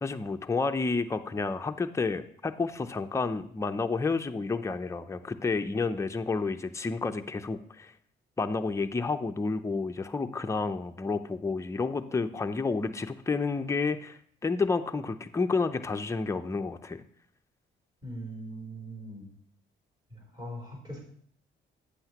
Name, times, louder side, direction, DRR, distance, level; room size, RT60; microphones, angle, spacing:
voice 1, 0.0-7.9 8.4-17.0, left 4 dB, 15° left, 7 dB, 0.5 m, -30 dB
voice 2, 18.0-19.3 20.1-21.0, right 1 dB, 20° right, -3 dB, 3.5 m, -41 dB
8.3 x 7.7 x 2.9 m, 0.62 s
cardioid pair, 90°, 20 cm